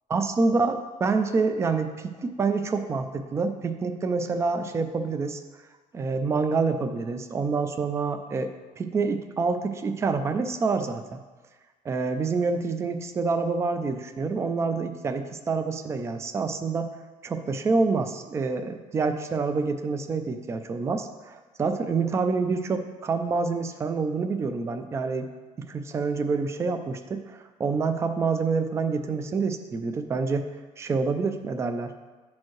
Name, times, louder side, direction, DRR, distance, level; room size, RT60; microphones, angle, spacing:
voice 1, 0.1-5.4 5.9-11.2 11.8-17.0 17.2-25.3 25.6-30.5 30.8-31.9, right 4 dB, 20° right, 7 dB, 0.3 m, -27 dB
9.4 x 4.4 x 3.1 m, 1.3 s
cardioid pair, 165°, 14 cm